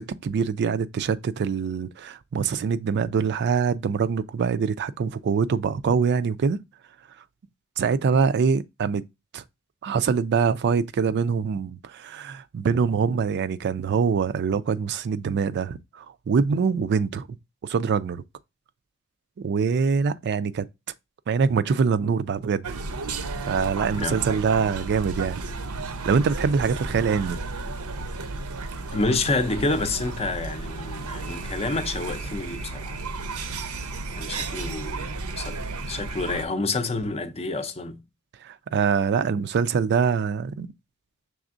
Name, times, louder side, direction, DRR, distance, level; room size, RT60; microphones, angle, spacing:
voice 1, 0.0-6.6 7.8-9.0 9.3-9.4 9.8-17.3 17.6-18.2 19.4-20.7 21.3-22.7 23.5-25.4 26.0-27.4 38.4-40.7, right 6 dB, 50° right, 0.3 m, -24 dB
sound 1, 22.6-36.5, right 3 dB, 85° right, 0.7 m, -33 dB
voice 2, 23.9-24.2 28.9-33.0 34.1-35.6 35.9-38.0, left 3 dB, 30° left, 0.5 m, -28 dB
6.0 x 3.4 x 2.5 m
head